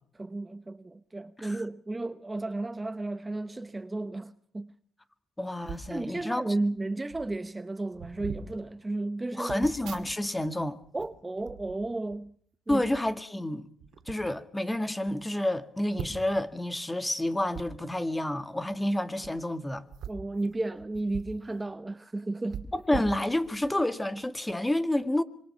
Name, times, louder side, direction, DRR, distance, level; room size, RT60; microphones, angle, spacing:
voice 1, 0.1-4.7 5.9-9.5 10.9-12.3 12.7-12.9 20.1-22.7, right 2 dB, 15° right, 0.9 m, -33 dB
voice 2, 5.4-6.5 9.3-10.8 12.7-13.7 14.1-19.8 22.7-25.2, left 1 dB, 10° left, 2.0 m, -29 dB
sound 1, 5.6-5.9 6.8-6.9 7.1-7.4 7.9-8.5 9.5-10.5 10.8-12.2 12.7-13.0 13.8-14.2 14.7-14.8 15.1-15.2 15.9-16.4 17.5-17.7 19.1-19.3 19.9-21.4 21.7-21.8 22.5-23.7 24.2-24.4, right 8 dB, 75° right, 2.4 m, -42 dB
26.0 x 24.0 x 5.8 m
cardioid pair, 90°, 0 cm